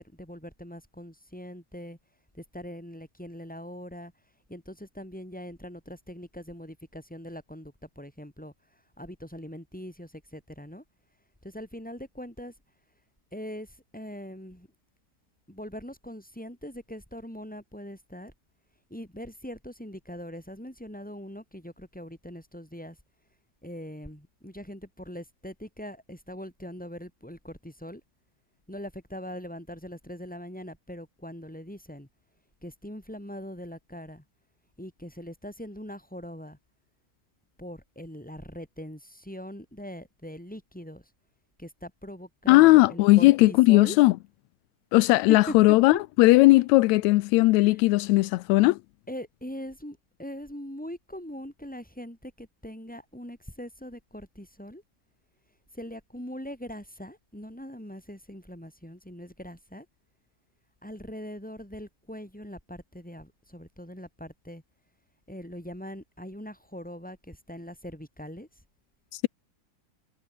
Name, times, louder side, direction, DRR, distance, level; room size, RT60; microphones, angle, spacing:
voice 1, 0.0-2.0 2.3-4.1 4.5-8.5 9.0-10.8 11.4-12.5 13.3-14.7 15.5-18.3 18.9-23.0 23.6-28.0 28.7-32.1 32.6-34.2 34.8-36.6 37.6-41.0 41.6-44.0 45.3-45.8 47.5-47.8 49.1-54.8 55.7-59.9 60.8-64.6 65.3-68.5, equal, ahead, 6.9 m, -41 dB
voice 2, 42.5-44.1 44.9-48.8 69.1-69.3, left 20 dB, 90° left, 1.6 m, -18 dB
omnidirectional pair, 3.8 m